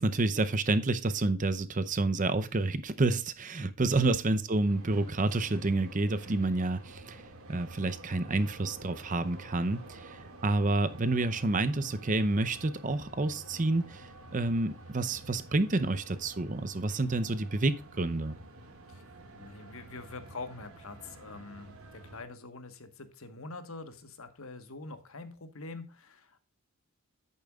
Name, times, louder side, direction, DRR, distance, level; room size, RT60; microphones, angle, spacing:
voice 1, 0.0-7.2 7.5-10.2 10.4-14.0 14.3-18.4, right 2 dB, 35° right, 0.6 m, -29 dB
sound 1, 4.7-22.2, right 2 dB, 75° right, 2.0 m, -50 dB
voice 2, 19.3-26.4, left 3 dB, 70° left, 1.3 m, -45 dB
10.5 x 8.7 x 2.4 m
head